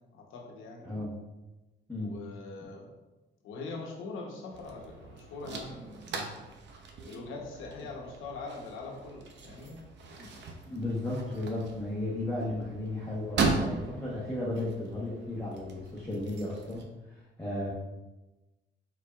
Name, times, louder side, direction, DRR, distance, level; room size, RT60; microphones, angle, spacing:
voice 1, 0.1-0.9 2.0-2.9 3.4-6.4 7.0-9.8, left 3 dB, 85° left, 0 dB, 1.0 m, -42 dB
sound 1, 4.5-16.8, right 4 dB, 65° right, 0.7 m, -38 dB
voice 2, 10.7-17.7, left 1 dB, 10° left, -6 dB, 1.0 m, -34 dB
4.6 x 4.2 x 2.4 m, 1.1 s
cardioid pair, 90°, 20 cm